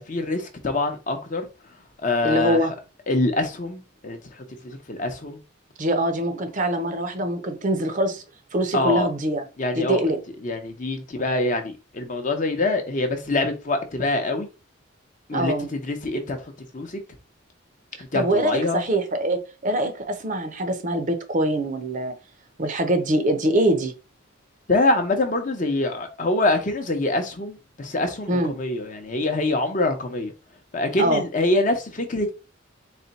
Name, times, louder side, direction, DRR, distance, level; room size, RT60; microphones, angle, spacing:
voice 1, 0.0-1.5 2.0-2.6 3.1-5.4 8.7-9.1 9.6-10.0 10.4-14.5 15.3-16.4 16.7-17.0 18.1-18.8 24.7-30.3 30.7-32.3, left 2 dB, 35° left, 0.7 m, -25 dB
voice 2, 2.2-2.7 5.8-8.2 8.5-9.4 9.8-10.2 15.3-15.7 18.1-22.1 22.6-23.9 28.3-28.5 31.0-31.2, right 1 dB, 40° right, 0.6 m, -23 dB
4.1 x 2.2 x 4.0 m
head